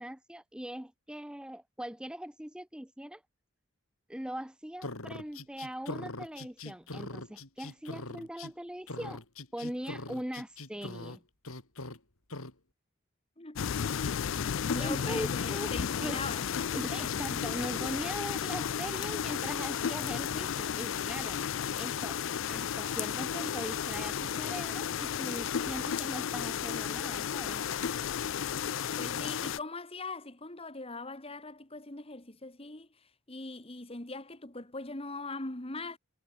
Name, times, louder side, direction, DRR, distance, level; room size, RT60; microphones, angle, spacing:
voice 1, 0.0-3.2 4.1-9.2 9.5-11.2 14.7-15.7 16.0-16.2 16.7-21.4 21.8-27.6, equal, 5° right, 0.6 m, -41 dB
sound 1, 4.8-8.5 8.9-11.2 11.4-12.0 12.3-12.5, left 2 dB, 85° left, 4.1 m, -41 dB
voice 2, 13.4-14.3 14.7-17.1 17.7-17.9 29.0-32.9 33.3-36.0, left 3 dB, 25° left, 1.9 m, -41 dB
sound 2, 13.6-29.6, left 8 dB, 65° left, 0.4 m, -33 dB
head